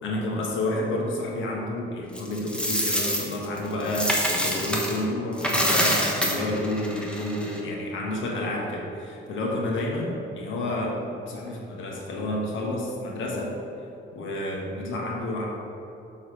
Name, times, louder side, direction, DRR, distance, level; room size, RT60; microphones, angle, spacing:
voice 1, 0.0-13.6 14.1-15.4, left 1 dB, 75° left, -1 dB, 1.2 m, -30 dB
Coin (dropping), 2.2-5.0 5.3-7.6, equal, 5° left, 1.2 m, -26 dB
6.5 x 4.0 x 6.1 m, 2.8 s
cardioid pair, 90°, 20 cm